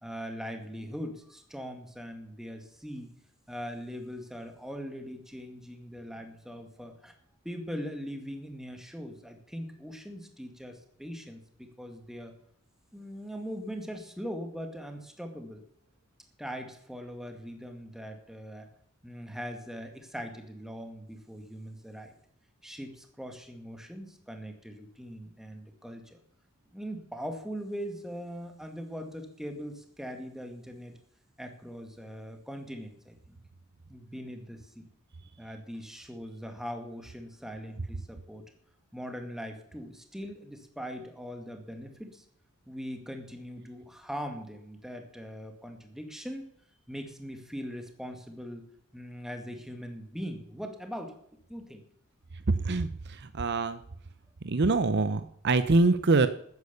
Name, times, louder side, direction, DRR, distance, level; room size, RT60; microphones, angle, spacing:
voice 1, 0.0-3.1 3.5-7.1 7.4-12.3 12.9-15.6 16.4-18.7 19.0-22.1 22.6-26.2 26.7-30.9 31.4-33.4 33.9-34.9 35.4-38.5 38.9-42.2 42.7-46.4 46.9-48.6 48.9-51.1 51.5-51.8 55.6-55.7, equal, ahead, 5 dB, 2.1 m, -41 dB
voice 2, 52.5-53.8 54.4-56.3, right 3 dB, 55° right, 12 dB, 0.7 m, -25 dB
13.0 x 9.7 x 6.9 m, 0.69 s
head